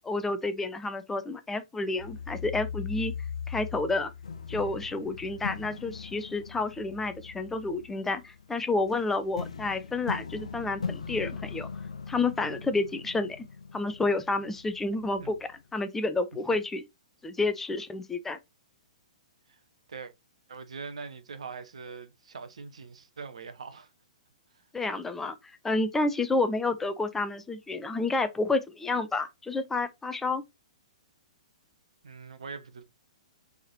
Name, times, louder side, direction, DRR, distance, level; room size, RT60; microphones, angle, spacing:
voice 1, 0.0-3.1 3.5-4.1 4.5-11.7 12.1-13.5 13.7-15.4 15.7-16.8 17.2-18.4 24.7-25.4 25.6-30.4, left 3 dB, 10° left, 0.5 m, -30 dB
sound 1, 2.0-15.6, left 6 dB, 65° left, 0.6 m, -40 dB
voice 2, 20.5-23.9 24.5-24.6 32.0-32.8, right 5 dB, 60° right, 0.8 m, -42 dB
5.4 x 3.5 x 2.7 m
figure-of-eight pair, 115°, 4 cm